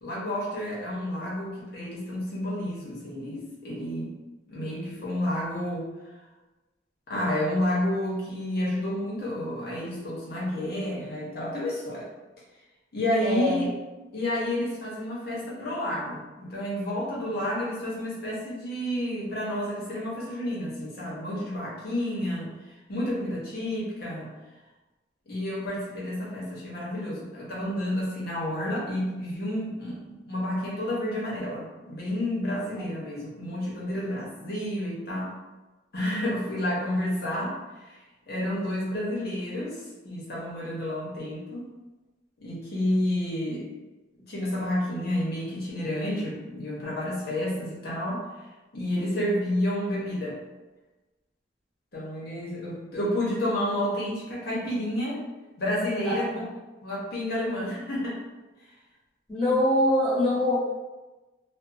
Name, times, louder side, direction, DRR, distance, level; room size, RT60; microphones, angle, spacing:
voice 1, 0.0-4.1 4.5-5.9 7.1-12.0 12.9-13.7 14.1-22.5 22.9-24.3 25.3-35.3 35.9-37.6 38.3-41.7 42.4-43.7 44.3-48.3 48.7-50.4 51.9-55.3 55.6-56.5 56.8-58.2, left 1 dB, 60° left, -5 dB, 0.9 m, -30 dB
voice 2, 13.2-13.6 32.8-32.9 56.0-56.5 59.3-60.6, left 1 dB, 5° left, -11 dB, 1.2 m, -24 dB
2.6 x 2.1 x 2.6 m, 1.1 s
head